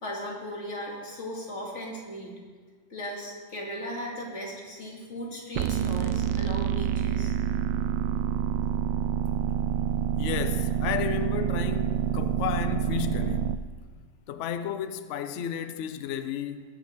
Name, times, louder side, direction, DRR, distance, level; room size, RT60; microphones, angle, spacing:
voice 1, 0.0-2.3 2.9-7.3, equal, 40° left, 2.8 m, -37 dB
sound 1, 5.5-13.6, right 8 dB, 75° right, 1.2 m, -27 dB
voice 2, 10.2-13.6 14.3-16.6, left 9 dB, 85° left, 0.6 m, -33 dB
20.5 x 7.4 x 5.1 m
omnidirectional pair, 2.0 m